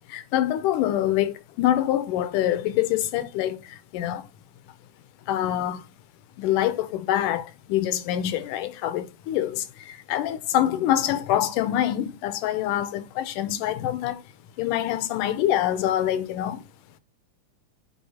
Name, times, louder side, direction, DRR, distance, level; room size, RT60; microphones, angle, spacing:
voice 1, 0.1-3.6 3.9-4.2 5.3-5.8 6.4-9.6 10.1-14.2 14.6-16.6, left 12 dB, 80° left, 2.2 m, -25 dB
9.4 x 3.5 x 4.2 m
omnidirectional pair, 3.7 m